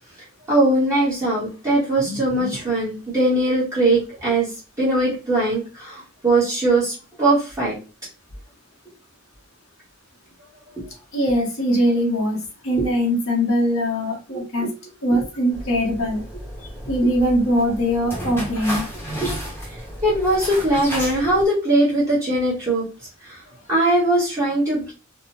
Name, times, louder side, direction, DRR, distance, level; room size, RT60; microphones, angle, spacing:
voice 1, 0.5-4.5 4.8-7.8 10.7-10.8 12.8-12.9 14.6-14.7 19.2-19.3 19.7-19.8 20.0-22.8 23.2-23.4 23.7-24.9, right 1 dB, 15° right, -10 dB, 0.9 m, -20 dB
voice 2, 11.1-12.4 12.6-14.7 15.0-16.2 16.6-18.8, equal, 70° left, -2 dB, 0.9 m, -21 dB
sound 1, 15.5-21.5, equal, 10° left, 0.8 m, -33 dB
2.7 x 2.0 x 2.8 m, 0.32 s
head